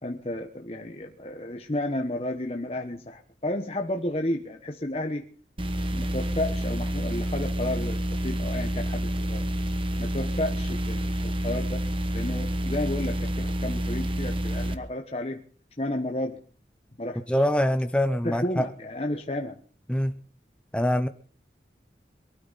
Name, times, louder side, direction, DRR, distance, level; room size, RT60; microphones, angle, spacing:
voice 1, 0.0-5.2 5.9-9.4 10.0-11.8 12.1-15.4 15.8-16.4 17.0-17.4 18.2-19.6, left 1 dB, 35° left, 1.1 m, -32 dB
sound 1, 5.6-14.7, equal, 30° right, 1.1 m, -28 dB
voice 2, 17.3-18.7 19.9-20.1 20.7-21.1, equal, 5° left, 0.7 m, -24 dB
23.0 x 12.5 x 4.1 m
head